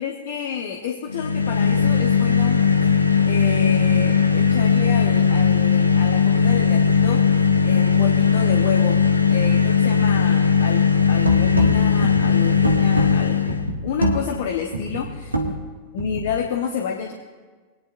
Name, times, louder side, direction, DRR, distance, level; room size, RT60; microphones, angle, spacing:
voice 1, 0.0-9.0 9.3-13.6 13.8-15.6 15.9-17.1, left 7 dB, 55° left, 2 dB, 1.0 m, -30 dB
sound 1, 1.1-13.7, left 6 dB, 85° left, 0.7 m, -18 dB
sound 2, 11.1-16.4, equal, 80° right, 1.1 m, -26 dB
23.0 x 9.4 x 2.6 m, 1.4 s
figure-of-eight pair, 90°, 0 cm